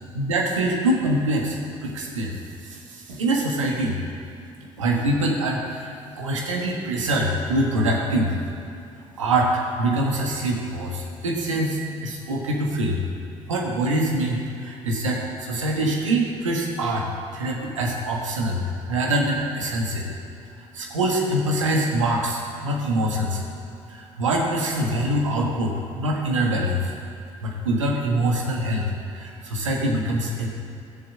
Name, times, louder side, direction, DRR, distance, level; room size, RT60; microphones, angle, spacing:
voice 1, 0.1-2.4 2.6-4.0 4.6-8.4 9.2-13.0 13.5-17.1 17.3-20.1 20.7-23.4 23.9-26.9 27.4-30.5, right 1 dB, 85° right, -1 dB, 1.5 m, -24 dB
15.0 x 7.2 x 7.4 m, 2.6 s
hypercardioid pair, 45°, 16 cm